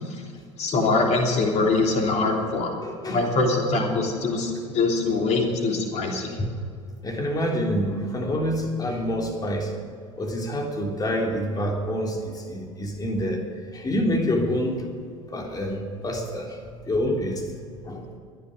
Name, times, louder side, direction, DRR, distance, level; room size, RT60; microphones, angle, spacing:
voice 1, 0.6-2.8 3.1-6.4, left 3 dB, 40° left, 1 dB, 3.3 m, -23 dB
voice 2, 2.8-3.3 6.4-6.5 7.0-9.7 10.2-13.4 13.7-14.9 15.3-16.6 16.9-17.4 17.8-18.1, equal, 20° left, 2 dB, 3.2 m, -27 dB
23.0 x 10.0 x 5.2 m, 2.3 s
figure-of-eight pair, 70°, 17 cm